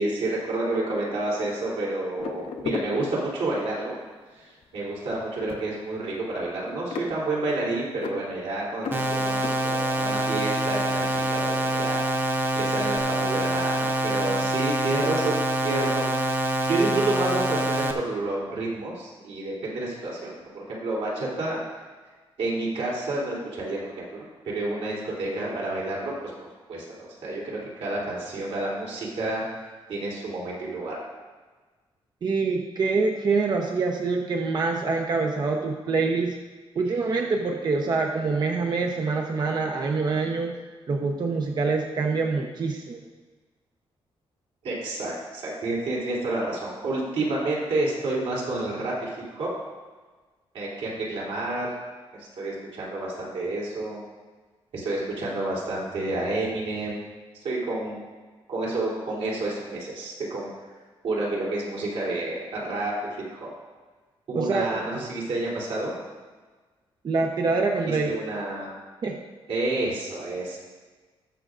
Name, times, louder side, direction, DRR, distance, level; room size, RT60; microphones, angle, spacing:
voice 1, 0.0-4.0 4.3-12.0 12.5-21.6 22.4-26.1 26.4-29.4 29.9-31.0 44.6-49.5 50.5-51.8 52.1-54.0 54.7-57.0 57.4-58.0 58.5-60.5 61.0-63.5 64.3-66.0 67.8-68.7 69.5-70.6, right 2 dB, 90° right, -4 dB, 3.2 m, -29 dB
sound 1, 2.2-3.8 4.4-4.6 4.9-12.1 12.3-13.0, left 6 dB, 70° left, 0.9 m, -38 dB
sound 2, 8.9-17.9, right 1 dB, 20° right, 0.9 m, -26 dB
voice 2, 32.2-36.4 36.7-40.5 40.9-43.0 64.3-64.7 67.0-68.1 69.0-69.2, right 4 dB, 45° right, 2 dB, 0.8 m, -25 dB
19.5 x 6.7 x 2.5 m, 1.4 s
wide cardioid pair, 140°, 10 cm